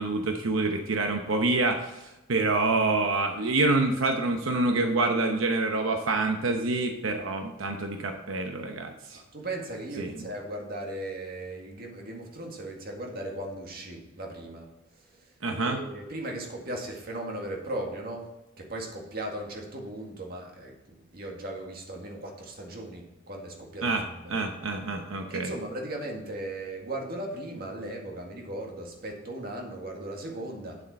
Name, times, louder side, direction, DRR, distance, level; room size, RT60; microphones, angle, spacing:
voice 1, 0.0-9.2 10.0-10.3 15.4-15.8 23.8-25.5, right 2 dB, 90° right, 4 dB, 0.9 m, -27 dB
voice 2, 9.3-14.7 15.6-18.3 18.6-23.9 24.2-24.4 25.3-30.8, right 1 dB, 50° right, 1 dB, 2.0 m, -37 dB
9.3 x 7.5 x 4.3 m, 0.98 s
head